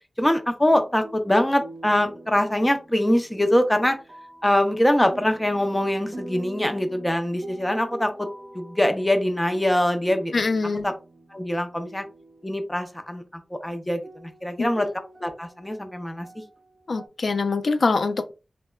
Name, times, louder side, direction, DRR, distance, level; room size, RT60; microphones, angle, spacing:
voice 1, 0.2-4.0 4.4-8.3 8.5-10.3 10.8-10.9 11.3-12.0 12.4-13.2 13.5-14.9 15.2-16.4, left 1 dB, 15° left, 0.6 m, -23 dB
sound 1, 0.7-12.7 13.6-13.7 14.0-17.1, right 2 dB, 45° right, 0.5 m, -45 dB
voice 2, 10.3-10.9 16.9-18.3, left 3 dB, 75° left, 0.3 m, -23 dB
2.9 x 2.1 x 2.2 m
cardioid pair, 45°, 0 cm